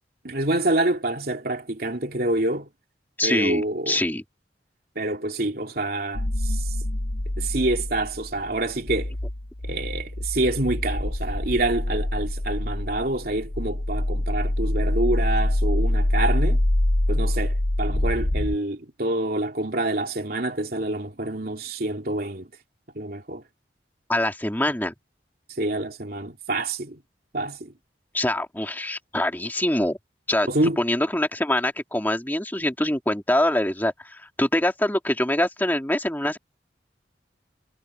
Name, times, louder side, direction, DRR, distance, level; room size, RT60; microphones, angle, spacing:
voice 1, 0.2-2.7 3.2-4.0 4.9-6.6 7.4-9.1 9.6-16.6 17.1-22.5 22.9-23.4 25.6-27.0 27.3-27.7 30.5-30.8, right 2 dB, 55° right, 3.0 m, -27 dB
voice 2, 3.2-4.2 24.1-24.9 28.1-30.0 30.3-30.5 30.8-36.4, left 1 dB, 10° left, 2.3 m, -24 dB
sound 1, 6.1-18.6, left 1 dB, 80° left, 1.4 m, -25 dB
head